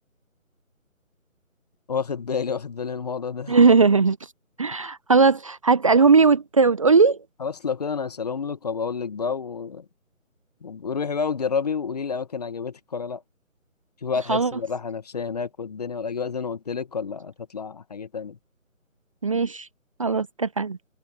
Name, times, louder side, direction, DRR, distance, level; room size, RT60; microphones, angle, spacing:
voice 1, 1.9-3.6 7.4-9.8 10.6-13.2 14.0-18.4, left 5 dB, 30° left, 1.8 m, -29 dB
voice 2, 3.5-4.2 4.6-7.2 14.3-14.5 19.2-19.7 20.0-20.8, right 4 dB, 25° right, 1.2 m, -18 dB
figure-of-eight pair, 155°, 41 cm